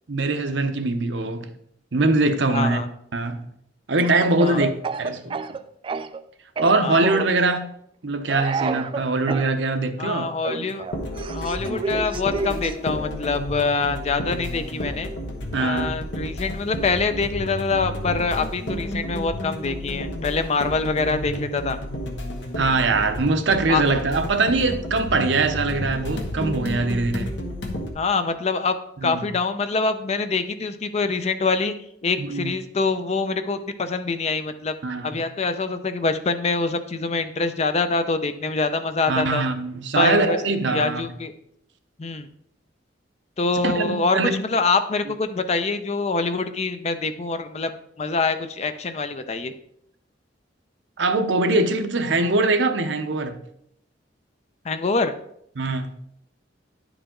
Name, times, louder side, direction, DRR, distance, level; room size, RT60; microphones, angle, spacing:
voice 1, 0.1-1.5 1.9-2.8 3.1-3.4 3.9-4.7 5.0-5.4 6.6-7.7 8.0-10.2 15.5-15.9 22.6-27.3 29.0-29.3 32.2-32.5 34.8-35.2 39.1-41.1 43.6-44.4 51.0-53.4 55.6-55.9, right 3 dB, 75° right, 0.7 m, -22 dB
voice 2, 2.5-2.9 4.4-4.6 6.8-7.0 10.0-10.8 11.3-15.1 15.5-21.8 23.7-23.8 27.9-28.7 29.0-31.7 32.0-34.7 35.0-39.4 40.0-40.4 40.7-41.3 42.0-42.3 43.4-47.7 48.0-49.5 54.7-55.1, left 4 dB, 35° left, 0.5 m, -25 dB
Speech / Cough, 4.0-6.2 6.6-7.4 8.3-9.5 10.4-12.7, right 4 dB, 30° right, 0.3 m, -30 dB
sound 1, 10.7-27.9, equal, 75° left, 1.2 m, -31 dB
10.0 x 5.0 x 3.7 m
head